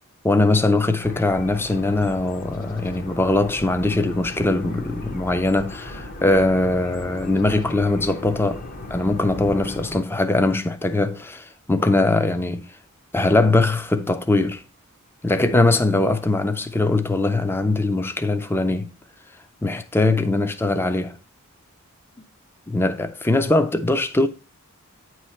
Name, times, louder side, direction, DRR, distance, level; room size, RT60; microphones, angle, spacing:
voice 1, 0.2-8.6 8.9-12.7 13.1-14.6 15.2-18.9 19.6-21.2 22.7-24.3, left 2 dB, 10° left, 0.4 m, -21 dB
sound 1, 1.0-10.0, left 1 dB, 40° left, 0.8 m, -36 dB
8.9 x 3.1 x 5.6 m
head